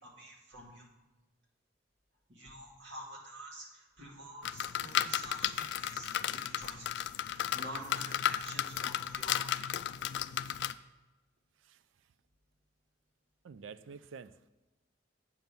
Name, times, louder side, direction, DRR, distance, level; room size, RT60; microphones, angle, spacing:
voice 1, 0.0-0.9 2.3-9.8, right 1 dB, 65° right, -2 dB, 2.2 m, -48 dB
sound 1, 4.4-10.7, left 10 dB, 65° left, 0.3 m, -34 dB
voice 2, 13.4-14.5, right 5 dB, 90° right, 14 dB, 0.4 m, -49 dB
8.1 x 5.4 x 6.0 m, 1.2 s
head